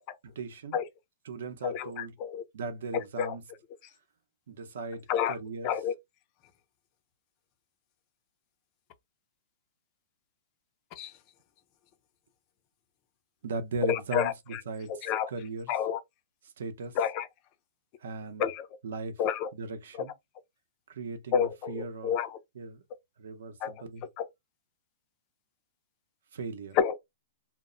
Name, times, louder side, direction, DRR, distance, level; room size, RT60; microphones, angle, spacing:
voice 1, 0.2-0.8 1.3-2.1 2.5-3.4 4.5-5.7 13.4-15.7 16.6-17.0 18.0-18.4 18.8-19.1 19.5-20.1 20.9-22.1 22.5-22.8 23.2-24.0 26.3-26.8, right 3 dB, 70° right, 0.6 m, -38 dB
voice 2, 1.6-2.4 3.2-3.3 5.1-5.4 5.6-5.9 11.0-11.1 13.8-14.6 14.9-15.3 15.7-16.0 17.0-17.3 18.4-18.7 19.2-19.5 21.3-22.4 23.6-23.7 24.2-24.3 26.8-27.0, left 8 dB, 30° left, 0.4 m, -29 dB
2.0 x 2.0 x 3.6 m
hypercardioid pair, 170°, 0 cm